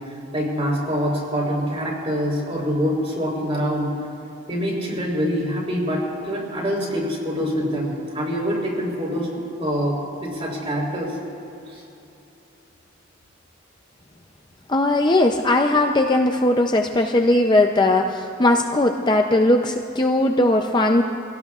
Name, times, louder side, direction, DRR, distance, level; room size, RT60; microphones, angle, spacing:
voice 1, 0.3-3.9 4.5-9.3 9.6-11.2 11.7-11.8, equal, 30° right, -2 dB, 3.9 m, -25 dB
voice 2, 14.7-21.0, left 1 dB, 20° left, 3 dB, 0.5 m, -19 dB
26.0 x 17.0 x 2.4 m, 2.8 s
head